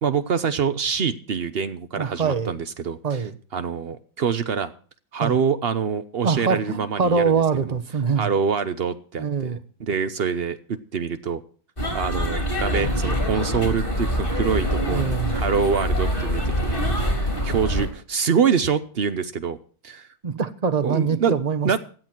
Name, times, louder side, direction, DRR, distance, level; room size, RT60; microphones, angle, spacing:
voice 1, 0.0-3.2 3.5-4.7 5.1-7.2 7.7-7.8 8.2-11.4 11.9-19.6 19.8-20.1 20.8-21.3 21.6-21.8, right 6 dB, 85° right, 0.5 m, -25 dB
voice 2, 2.0-2.5 3.0-3.3 5.2-5.4 6.2-8.3 9.2-9.6 12.8-12.9 14.9-15.4 20.2-21.8, right 5 dB, 30° right, 0.8 m, -24 dB
sound 1, 11.8-17.9, equal, 25° left, 4.1 m, -24 dB
16.5 x 11.0 x 4.5 m
omnidirectional pair, 2.2 m